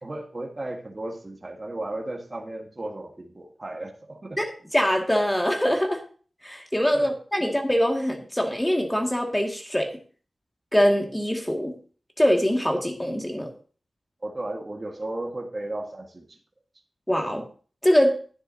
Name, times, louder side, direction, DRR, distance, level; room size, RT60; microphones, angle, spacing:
voice 1, 0.0-4.4 6.9-7.1 14.2-16.4, right 1 dB, 35° right, 1 dB, 1.6 m, -35 dB
voice 2, 4.7-6.0 6.4-9.9 10.7-11.8 12.2-13.5 17.1-17.4 17.8-18.2, equal, 10° left, 2 dB, 2.0 m, -23 dB
11.5 x 9.7 x 2.8 m, 0.41 s
wide cardioid pair, 90°, 0 cm